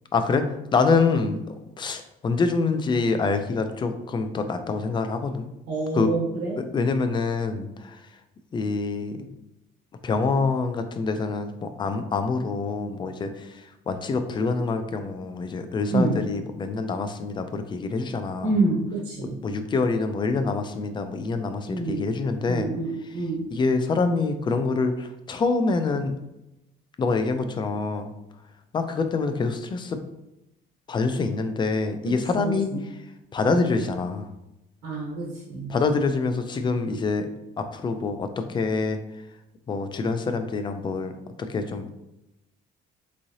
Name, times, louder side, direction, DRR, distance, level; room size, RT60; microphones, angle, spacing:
voice 1, 0.1-0.5 0.7-5.5 5.9-6.1 6.7-8.0 8.5-9.2 10.0-13.3 13.9-18.6 19.4-22.7 23.5-26.1 27.0-28.1 28.7-30.0 30.9-32.7 33.3-34.3 35.7-37.3 37.6-39.0 39.7-41.1 41.4-41.9, left 4 dB, 25° left, 8 dB, 0.4 m, -26 dB
voice 2, 5.7-6.6 15.9-16.2 18.4-19.3 21.6-22.1 22.5-23.4 32.0-32.8 34.8-35.8, right 3 dB, 85° right, -5 dB, 1.2 m, -27 dB
3.6 x 3.1 x 2.7 m, 0.91 s
cardioid pair, 110°, 17 cm